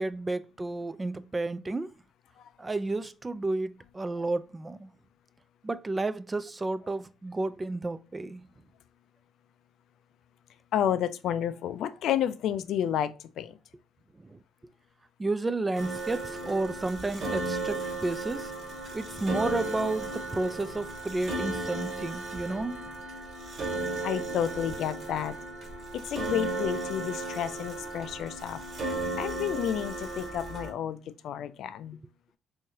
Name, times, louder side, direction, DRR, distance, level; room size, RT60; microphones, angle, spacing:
voice 1, 0.0-1.9 2.6-4.9 5.6-8.4 14.2-14.4 15.2-18.5 18.9-22.8, right 2 dB, 25° right, 0.3 m, -31 dB
voice 2, 10.7-13.5 24.0-25.3 25.9-28.6 29.2-32.0, left 9 dB, 65° left, 0.3 m, -31 dB
sound 1, 15.7-30.7, right 2 dB, 55° right, 1.5 m, -35 dB
3.5 x 3.1 x 2.8 m
hypercardioid pair, 55°, 0 cm